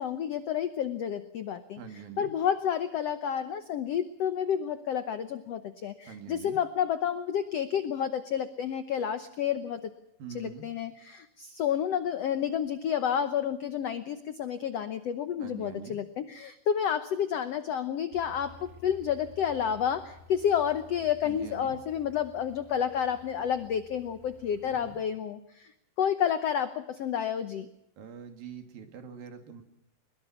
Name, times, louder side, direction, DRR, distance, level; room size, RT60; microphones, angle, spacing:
voice 1, 0.0-1.8 2.2-9.9 10.3-25.7 26.0-27.7, left 8 dB, 85° left, 11 dB, 1.4 m, -30 dB
voice 2, 1.8-2.3 6.1-6.6 10.2-10.7 15.4-16.0 21.2-21.8 24.6-25.0 28.0-29.6, right 7 dB, 70° right, 6 dB, 4.2 m, -44 dB
sound 1, 18.1-25.0, left 4 dB, 20° right, 2.0 m, -54 dB
23.0 x 22.0 x 5.9 m, 0.79 s
omnidirectional pair, 4.2 m